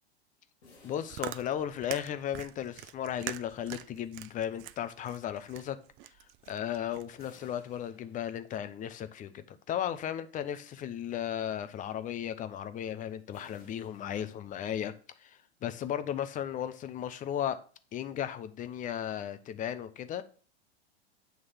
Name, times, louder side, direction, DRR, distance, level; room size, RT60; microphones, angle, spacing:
sound 1, 0.6-2.5 7.2-8.8 13.3-15.0, left 3 dB, 80° left, 2.4 m, -61 dB
voice 1, 0.8-5.8 6.5-14.9 15.2-17.6 17.9-20.2, left 10 dB, 25° left, 11 dB, 0.6 m, -35 dB
Chewing mastication, 0.8-7.3, right 15 dB, 35° right, 0.4 m, -44 dB
8.0 x 3.2 x 5.6 m, 0.41 s
hypercardioid pair, 105°, 33 cm